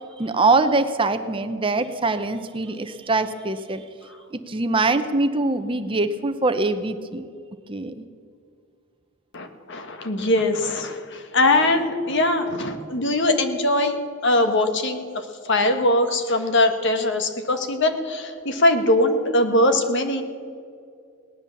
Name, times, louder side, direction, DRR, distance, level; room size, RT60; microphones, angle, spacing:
voice 1, 0.0-3.8 4.5-7.3 7.7-8.0, right 3 dB, 25° right, 9 dB, 0.7 m, -23 dB
voice 2, 9.3-14.0 14.2-20.2, left 1 dB, 55° left, 7 dB, 1.5 m, -21 dB
18.5 x 10.5 x 7.1 m, 2.2 s
head